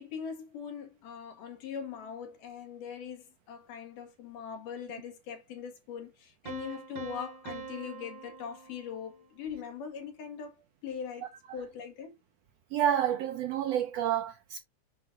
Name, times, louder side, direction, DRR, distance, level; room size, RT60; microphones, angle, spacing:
voice 1, 0.0-12.1, left 7 dB, 85° left, 3.4 m, -41 dB
Piano, 6.5-9.3, right 5 dB, 55° right, 1.4 m, -44 dB
voice 2, 12.7-14.6, right 10 dB, 75° right, 1.5 m, -29 dB
7.8 x 5.8 x 2.6 m
omnidirectional pair, 3.6 m